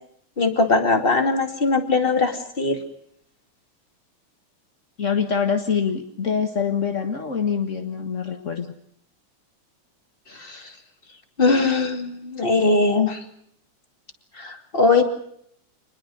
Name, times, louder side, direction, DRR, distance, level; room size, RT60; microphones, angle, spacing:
voice 1, 0.4-2.8 10.4-10.6 11.4-13.2 14.4-15.0, left 3 dB, 20° left, 6 dB, 2.2 m, -20 dB
voice 2, 5.0-8.7, left 6 dB, 45° left, 6 dB, 1.0 m, -25 dB
26.0 x 20.5 x 6.4 m, 0.69 s
omnidirectional pair, 3.8 m